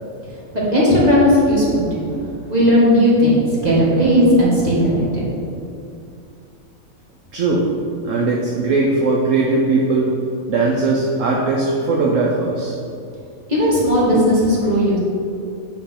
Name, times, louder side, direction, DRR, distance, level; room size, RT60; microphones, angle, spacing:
voice 1, 0.7-2.1 2.5-5.2 13.5-15.0, equal, 30° right, -8 dB, 2.3 m, -15 dB
voice 2, 7.3-7.7 8.0-10.1 10.5-12.7, right 3 dB, 65° right, -2 dB, 1.1 m, -19 dB
8.6 x 4.6 x 5.7 m, 2.5 s
omnidirectional pair, 1.5 m